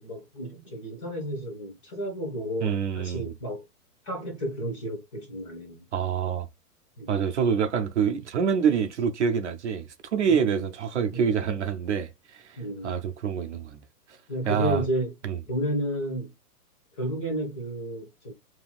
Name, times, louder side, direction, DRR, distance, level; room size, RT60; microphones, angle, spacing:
voice 1, 0.0-3.6 4.0-5.8 7.0-7.1 10.3-10.6 11.1-11.4 12.6-12.9 14.3-15.1 15.5-16.3 17.0-18.3, equal, 20° left, 1.0 m, -32 dB
voice 2, 2.6-3.3 5.9-6.5 7.1-13.8 14.5-14.8 15.2-15.4, right 7 dB, 50° right, 0.7 m, -26 dB
5.5 x 2.9 x 2.3 m
hypercardioid pair, 175°, 47 cm